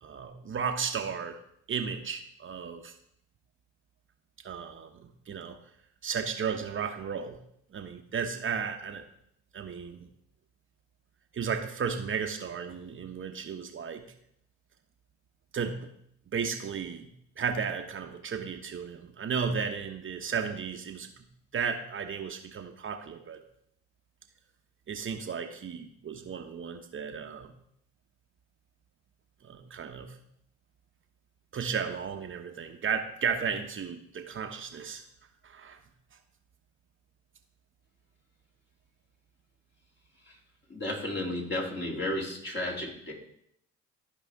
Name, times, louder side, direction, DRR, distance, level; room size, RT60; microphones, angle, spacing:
voice 1, 0.0-1.4 1.7-2.9 4.4-5.6 6.0-7.4 7.7-9.0 9.5-10.1 11.3-14.1 15.5-15.9 16.3-17.1 17.4-21.1 21.5-23.4 24.9-27.5 29.4-30.2 31.5-35.0 35.4-35.8, right 6 dB, 40° right, 5 dB, 0.9 m, -34 dB
voice 2, 40.7-43.1, left 1 dB, 35° left, -2 dB, 3.0 m, -33 dB
13.5 x 4.9 x 3.5 m, 0.71 s
supercardioid pair, 65°, 31 cm